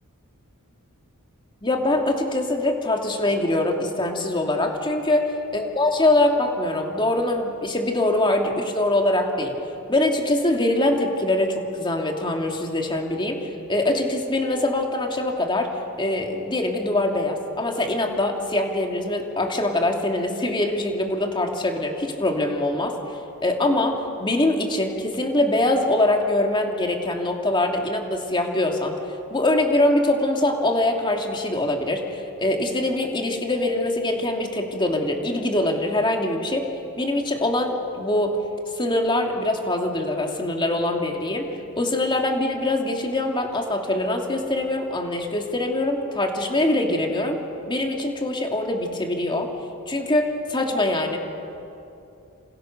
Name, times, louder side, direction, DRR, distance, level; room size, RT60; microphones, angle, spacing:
voice 1, 1.6-5.2 5.5-9.5 9.9-15.7 16.0-22.9 23.4-28.9 29.3-36.7 37.0-38.4 38.8-41.5 41.8-47.4 47.7-49.5 49.9-51.2, left 1 dB, 20° left, 2 dB, 2.8 m, -23 dB
27.5 x 27.5 x 6.8 m, 2.7 s
head